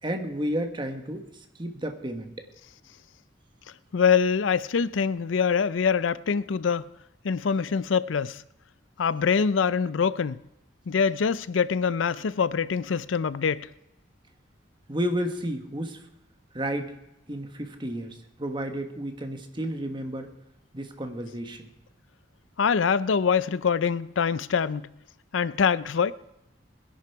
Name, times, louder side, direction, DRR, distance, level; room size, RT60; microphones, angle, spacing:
voice 1, 0.0-1.3 1.6-2.5 14.9-16.0 16.5-16.9 17.3-20.3 20.7-21.7, equal, 25° right, 1.5 m, -32 dB
voice 2, 3.9-6.9 7.2-8.4 9.0-10.4 10.9-13.7 22.6-24.9 25.3-26.1, left 6 dB, 85° left, 0.5 m, -24 dB
20.5 x 11.0 x 4.7 m
head